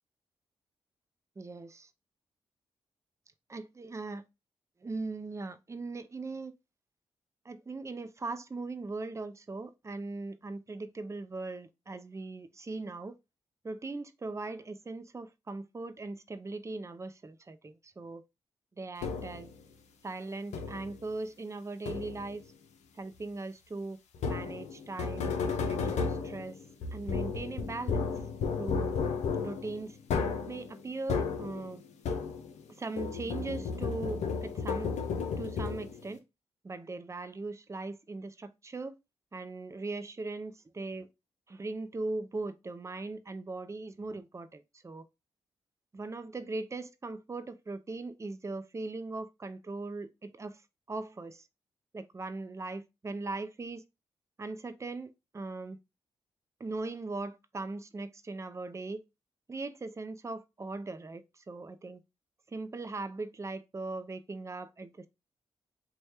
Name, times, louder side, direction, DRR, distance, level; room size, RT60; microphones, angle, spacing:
voice 1, 1.4-1.9 3.5-4.2 4.8-6.5 7.4-13.2 13.6-18.2 18.8-19.5 20.0-22.4 22.9-24.0 24.3-25.4 25.7-26.6 26.9-28.1 28.5-28.9 29.4-30.0 30.5-31.8 32.8-34.9 35.4-36.2 36.6-39.0 39.3-41.1 41.5-45.1 45.9-50.6 50.9-51.5 51.9-53.8 54.4-55.8 56.6-59.0 59.5-62.0 62.5-65.1, right 3 dB, 25° right, 0.5 m, -39 dB
sound 1, 19.0-19.5 20.5-21.0 21.9-22.4 24.1-32.7 33.0-36.1, left 5 dB, 75° left, 0.5 m, -33 dB
3.2 x 2.2 x 4.2 m
supercardioid pair, 40°, 12 cm